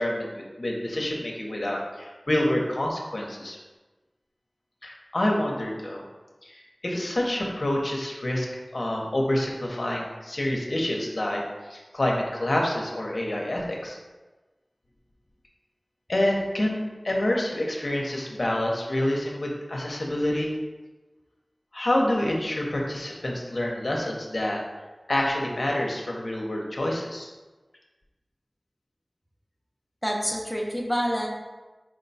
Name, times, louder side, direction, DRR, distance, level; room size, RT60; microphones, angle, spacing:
voice 1, 0.0-3.6 4.8-6.0 6.4-8.5 8.7-11.4 11.7-14.0 16.1-20.5 21.7-24.6 25.1-27.3, left 1 dB, 70° left, -1 dB, 0.7 m, -27 dB
voice 2, 30.0-31.3, equal, ahead, -2 dB, 0.7 m, -27 dB
4.6 x 2.2 x 4.0 m, 1.2 s
wide cardioid pair, 50°, 0 cm